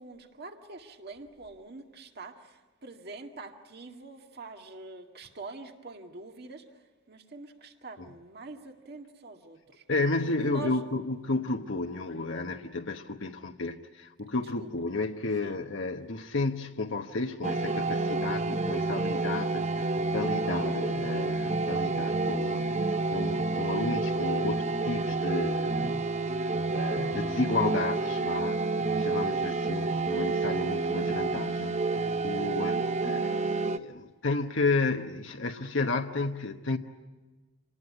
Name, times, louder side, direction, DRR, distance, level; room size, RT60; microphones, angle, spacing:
voice 1, 0.0-6.6 7.1-9.8 10.2-10.9 14.6-14.7 15.4-15.6 20.5-20.9, right 3 dB, 55° right, 4 dB, 2.0 m, -45 dB
voice 2, 9.9-22.8 23.1-26.1 26.7-28.6 29.0-31.8 32.2-36.8, left 3 dB, 70° left, 3 dB, 1.1 m, -32 dB
sound 1, 17.4-33.8, right 3 dB, 35° right, 0.8 m, -29 dB
27.5 x 19.0 x 9.8 m, 1.3 s
head